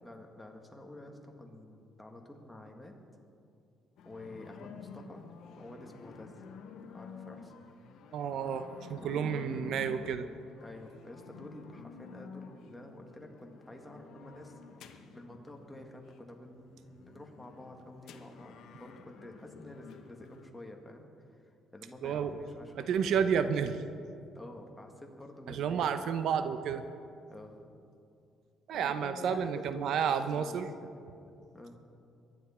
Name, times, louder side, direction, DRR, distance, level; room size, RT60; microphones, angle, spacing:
voice 1, 0.0-3.0 4.0-5.2 5.5-6.4 6.9-7.5 9.0-10.1 10.6-14.6 14.9-23.4 24.3-26.3 27.3-27.7 28.7-31.0 31.5-31.8, left 1 dB, 10° left, 2 dB, 1.8 m, -49 dB
sound 1, 4.0-20.5, left 6 dB, 70° left, 1.1 m, -51 dB
voice 2, 8.1-8.6 8.9-10.3 22.0-22.3 22.7-23.8 25.5-26.8 28.7-30.7, right 7 dB, 70° right, 10 dB, 0.7 m, -31 dB
23.0 x 10.5 x 4.4 m, 2.5 s
cardioid pair, 125°, 0 cm